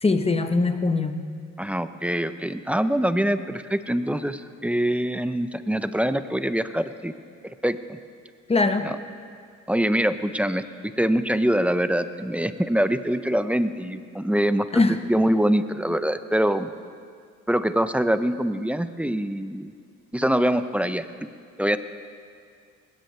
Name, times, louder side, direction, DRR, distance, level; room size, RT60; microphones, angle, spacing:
voice 1, 0.0-1.2 8.5-8.9 14.7-15.0, left 3 dB, 20° left, 8 dB, 1.0 m, -21 dB
voice 2, 1.6-7.1 7.4-8.0 8.8-9.0 9.7-14.7 15.0-16.7 17.5-19.7 20.1-21.1 21.6-21.8, equal, 5° right, 11 dB, 0.6 m, -24 dB
20.0 x 17.5 x 3.2 m, 2.2 s
cardioid pair, 90°, 30 cm